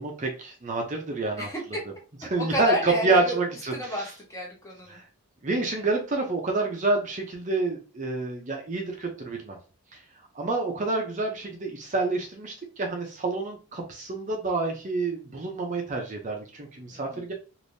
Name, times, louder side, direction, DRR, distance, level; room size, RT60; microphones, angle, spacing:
voice 1, 0.0-1.5 2.2-4.1 4.9-5.0 5.4-9.6 9.9-10.0 10.3-17.3, right 3 dB, 35° right, 2 dB, 0.5 m, -28 dB
voice 2, 1.4-1.8 2.2-3.4 3.7-5.0 16.9-17.2, left 1 dB, 15° left, -1 dB, 0.8 m, -31 dB
3.4 x 2.6 x 2.6 m, 0.36 s
head